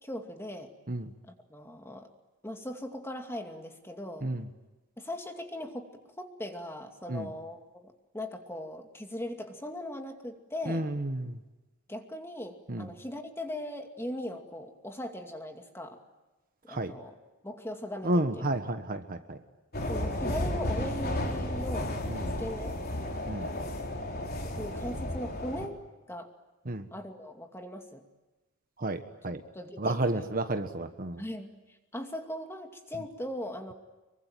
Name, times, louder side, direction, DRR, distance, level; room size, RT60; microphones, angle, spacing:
voice 1, 0.0-0.7 1.3-2.1 2.4-4.3 5.0-10.9 11.9-16.0 16.7-17.2 17.4-18.5 19.9-22.0 22.4-22.8 24.6-25.8 26.1-26.3 26.9-28.0 29.2-30.3 31.2-33.7, left 1 dB, 10° left, 4 dB, 2.4 m, -39 dB
voice 2, 10.7-11.4 12.7-12.9 16.7-16.9 18.0-19.4 22.1-22.3 23.3-23.5 26.7-26.9 28.8-29.4 29.8-31.2, right 1 dB, 40° right, 8 dB, 1.4 m, -31 dB
sound 1, 19.7-25.7, left 1 dB, 45° left, 3.7 m, -33 dB
26.0 x 23.5 x 9.2 m, 1.1 s
head